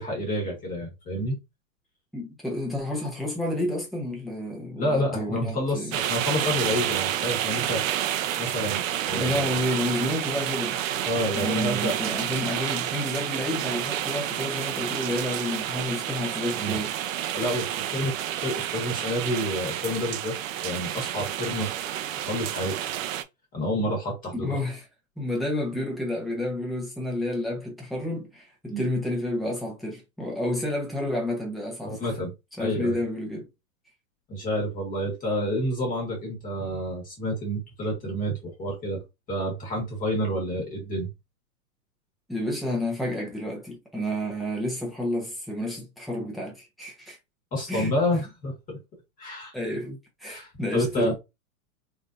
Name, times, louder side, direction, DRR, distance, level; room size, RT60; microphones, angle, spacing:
voice 1, 0.0-1.3 4.8-7.8 8.4-9.5 11.0-12.0 16.5-16.8 17.3-18.2 18.4-21.7 22.3-22.8 23.5-24.6 28.7-28.9 31.8-32.3 32.6-33.0 34.3-39.0 39.3-41.1 47.5-48.8 49.2-49.5 49.8-49.9 50.3-51.1, equal, 20° left, 1.2 m, -29 dB
voice 2, 2.1-6.0 9.1-10.8 11.3-16.9 24.3-24.8 25.2-32.1 32.6-33.5 42.3-47.2 47.7-47.9 49.5-49.9 50.2-51.1, left 1 dB, ahead, 0.7 m, -30 dB
sound 1, 5.9-23.2, right 11 dB, 65° right, 0.6 m, -29 dB
3.6 x 2.7 x 2.4 m
hypercardioid pair, 140°, 43 cm